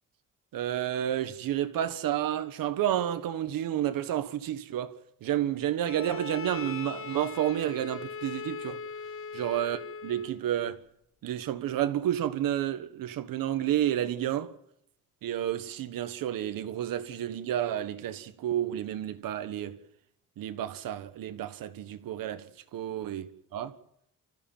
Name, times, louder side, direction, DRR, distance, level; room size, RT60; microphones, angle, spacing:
voice 1, 0.5-5.0 5.2-8.8 9.3-10.8 11.2-14.5 15.2-19.8 20.4-23.8, right 11 dB, 85° right, 1.5 m, -30 dB
Bowed string instrument, 5.8-10.4, left 6 dB, 40° left, 0.9 m, -40 dB
26.5 x 14.5 x 8.9 m
cardioid pair, 90°, 33 cm